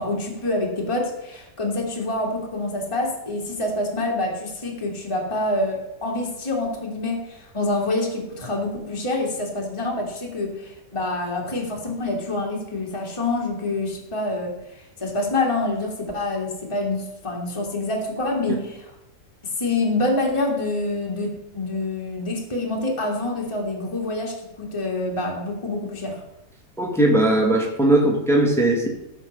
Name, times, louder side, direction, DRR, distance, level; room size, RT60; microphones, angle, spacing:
voice 1, 0.0-18.9 19.6-26.2, left 2 dB, 20° left, -1 dB, 2.0 m, -26 dB
voice 2, 26.8-28.9, right 1 dB, ahead, 1 dB, 1.7 m, -19 dB
14.0 x 5.5 x 5.3 m, 0.89 s
omnidirectional pair, 1.8 m